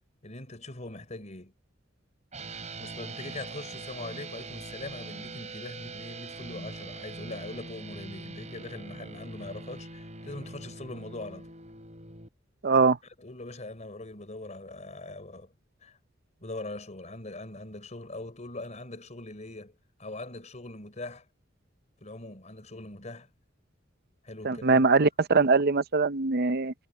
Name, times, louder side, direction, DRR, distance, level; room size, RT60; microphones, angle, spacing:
voice 1, 0.2-1.5 2.8-11.5 12.7-15.5 15.8-16.0 16.4-21.3 22.0-23.3 24.2-24.8, left 2 dB, 40° left, 4.3 m, -42 dB
sound 1, 2.3-12.3, right 3 dB, 40° right, 4.8 m, -42 dB
voice 2, 12.6-13.0 24.4-26.7, right 4 dB, 55° right, 0.7 m, -22 dB
head